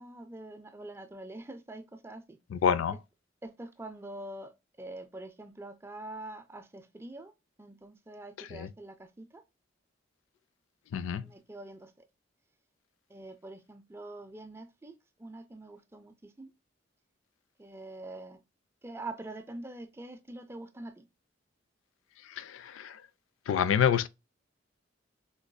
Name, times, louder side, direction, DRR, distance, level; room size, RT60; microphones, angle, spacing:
voice 1, 0.0-2.4 3.4-4.5 4.8-7.3 7.6-9.4 11.2-11.9 13.1-16.5 17.6-18.4 18.8-21.0, right 2 dB, 15° right, 0.4 m, -45 dB
voice 2, 2.5-3.0 8.4-8.7 10.9-11.2 22.3-23.0 23.5-24.1, left 8 dB, 85° left, 0.3 m, -28 dB
3.8 x 2.5 x 2.2 m
head